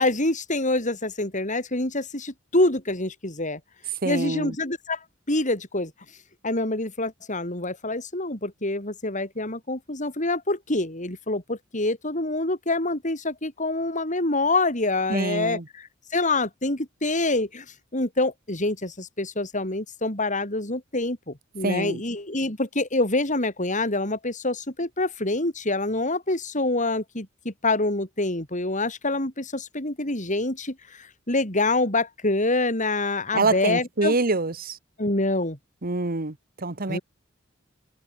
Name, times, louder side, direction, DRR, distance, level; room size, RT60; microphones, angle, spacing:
voice 1, 0.0-3.6 4.0-5.0 5.3-5.9 6.4-17.6 17.9-34.1 35.0-35.6 36.9-37.0, left 2 dB, 40° left, 6.7 m, -26 dB
voice 2, 4.0-4.5 15.1-15.6 21.6-22.0 33.3-34.8 35.8-37.0, right 3 dB, 45° right, 1.4 m, -26 dB
head